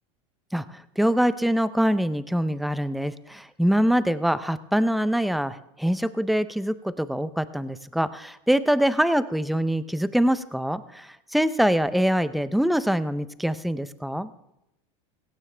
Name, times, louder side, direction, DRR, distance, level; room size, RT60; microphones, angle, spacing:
voice 1, 0.5-14.3, equal, ahead, 14 dB, 0.6 m, -24 dB
17.0 x 17.0 x 3.4 m, 0.87 s
supercardioid pair, 140°, 16 cm